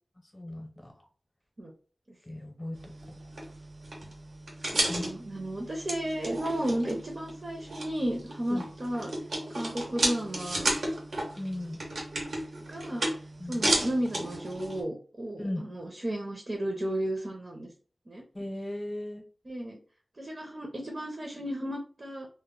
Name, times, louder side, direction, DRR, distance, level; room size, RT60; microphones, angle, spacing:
voice 1, 0.3-0.9 2.3-2.8 4.9-5.1 8.5-8.6 11.4-11.8 13.4-13.7 15.4-15.7 18.3-19.2, left 1 dB, 30° left, 2 dB, 0.7 m, -36 dB
sound 1, 2.7-14.8, right 1 dB, 90° right, 1.0 m, -34 dB
voice 2, 4.7-9.1 9.5-10.8 12.7-13.1 13.5-17.7 18.1-18.2 19.4-19.8 20.2-22.3, right 1 dB, 50° right, 0 dB, 0.6 m, -33 dB
2.1 x 2.1 x 3.6 m, 0.41 s
wide cardioid pair, 65°, 0 cm